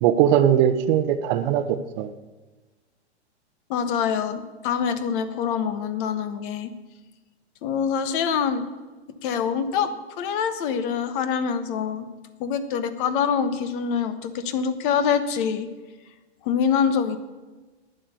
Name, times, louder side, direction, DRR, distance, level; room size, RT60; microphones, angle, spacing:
voice 1, 0.0-2.1, right 10 dB, 45° right, 10 dB, 0.9 m, -20 dB
voice 2, 3.7-6.7 7.6-8.6 9.2-12.1 12.4-15.7 16.4-17.2, left 7 dB, 50° left, 11 dB, 1.4 m, -25 dB
11.0 x 9.3 x 7.0 m, 1.3 s
hypercardioid pair, 125°, 34 cm